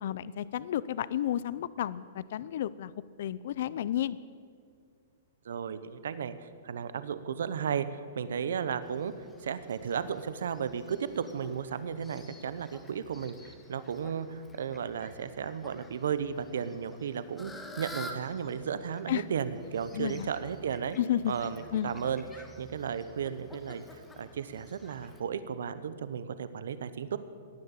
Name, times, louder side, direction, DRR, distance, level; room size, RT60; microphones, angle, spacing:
voice 1, 0.0-2.9 3.2-4.2 19.1-19.2 19.9-20.3 21.0-21.9, left 11 dB, 60° left, 18 dB, 0.5 m, -32 dB
voice 2, 5.4-9.1 9.4-21.0 21.3-27.2, right 7 dB, 80° right, 13 dB, 0.9 m, -34 dB
Fowl, 8.8-25.2, left 1 dB, 10° left, 1.5 m, -51 dB
17.5 x 11.0 x 7.3 m, 2.3 s
hypercardioid pair, 155°, 0 cm